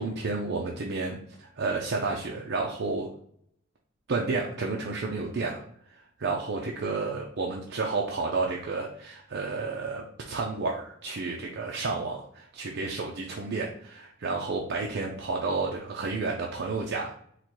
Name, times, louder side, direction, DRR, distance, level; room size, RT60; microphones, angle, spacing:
voice 1, 0.0-3.1 4.1-5.6 5.9-17.1, right 3 dB, 55° right, 0 dB, 0.5 m, -31 dB
4.0 x 2.2 x 4.5 m, 0.67 s
head